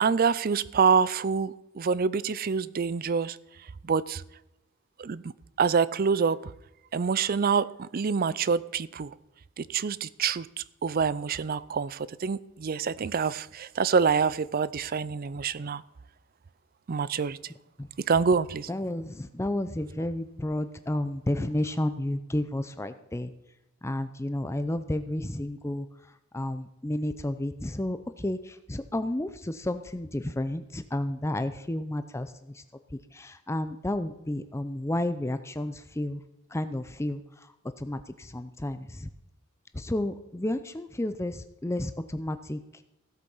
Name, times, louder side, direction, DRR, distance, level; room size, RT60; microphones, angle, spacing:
voice 1, 0.0-3.4 3.8-4.2 5.0-5.2 5.6-6.4 6.9-9.1 9.6-15.8 16.9-17.4 18.0-18.7, right 5 dB, 45° right, 18 dB, 0.4 m, -26 dB
voice 2, 18.7-23.3 23.8-25.9 26.3-32.6 32.9-36.2 36.5-39.1 39.7-42.6, left 1 dB, 10° left, 10 dB, 0.5 m, -31 dB
16.0 x 8.0 x 5.5 m, 0.91 s
head